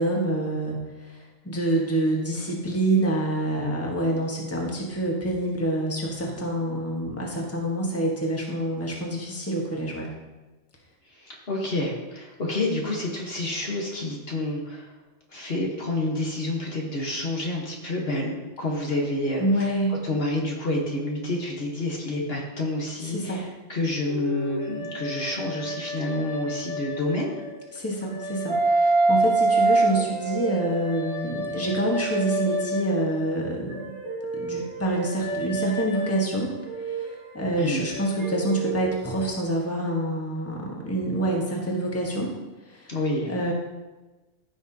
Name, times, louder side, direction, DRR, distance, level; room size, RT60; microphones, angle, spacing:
voice 1, 0.0-10.1 19.4-20.0 23.1-23.4 27.7-34.0 34.3-36.5 36.8-37.1 37.3-42.3 42.7-42.9 43.2-43.5, right 1 dB, 10° left, -2 dB, 1.5 m, -27 dB
voice 2, 11.1-14.9 15.3-18.3 18.6-27.4 37.6-37.9 42.9-43.3, left 2 dB, 50° left, -2 dB, 1.6 m, -29 dB
sound 1, 24.1-27.6 28.1-33.3 33.7-39.3, right 2 dB, 60° right, 1.8 m, -27 dB
15.0 x 6.0 x 2.9 m, 1.2 s
omnidirectional pair, 1.3 m